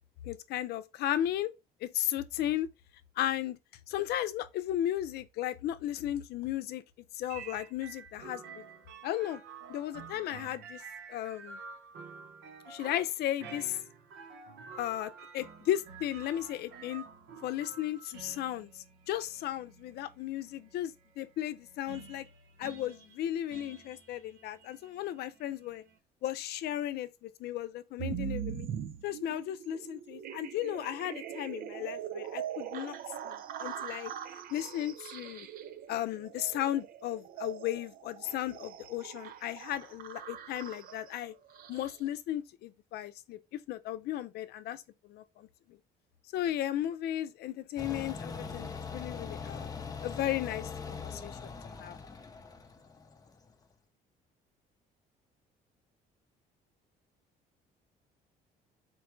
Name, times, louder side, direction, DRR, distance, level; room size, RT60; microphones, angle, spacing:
voice 1, 0.2-1.5 1.8-2.7 3.2-3.6 3.9-6.8 7.1-8.6 9.0-9.4 9.7-10.8 11.1-11.6 12.7-13.8 14.8-17.0 17.4-22.3 22.6-25.8 26.2-28.7 29.0-33.0 33.2-34.1 34.5-35.5 35.9-41.3 41.7-43.4 43.7-45.5 46.3-49.7 50.0-51.5 51.8-52.0, left 12 dB, 70° left, 0.6 m, -35 dB
sound 1, 7.3-26.0, right 6 dB, 80° right, 0.9 m, -50 dB
sound 2, 28.0-42.1, right 10 dB, 60° right, 0.5 m, -42 dB
sound 3, 47.8-53.5, left 5 dB, 20° left, 0.6 m, -42 dB
4.6 x 2.2 x 4.4 m
cardioid pair, 110°, 17 cm